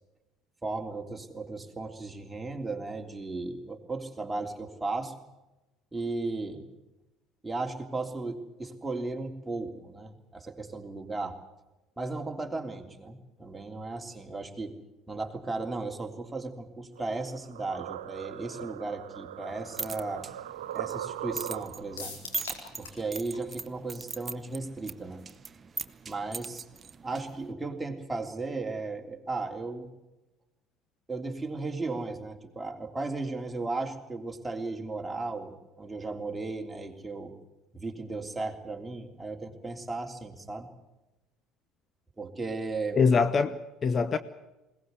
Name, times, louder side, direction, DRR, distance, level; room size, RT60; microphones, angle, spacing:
voice 1, 0.6-5.1 5.9-6.6 7.4-11.4 12.0-14.8 15.1-20.3 20.7-22.2 22.8-25.2 26.1-26.7 27.0-29.9 31.1-37.3 37.7-40.7 42.2-43.0, right 3 dB, 15° right, 3.3 m, -35 dB
sound 1, 17.0-22.0, right 11 dB, 80° right, 0.7 m, -40 dB
sound 2, 19.5-27.5, right 5 dB, 30° right, 1.0 m, -41 dB
sound 3, 22.0-23.1 23.3-23.4 23.8-23.9, left 4 dB, 85° left, 4.3 m, -41 dB
voice 2, 42.9-44.2, left 5 dB, 35° left, 1.0 m, -24 dB
21.0 x 19.0 x 8.3 m
hypercardioid pair, 65°, 0 cm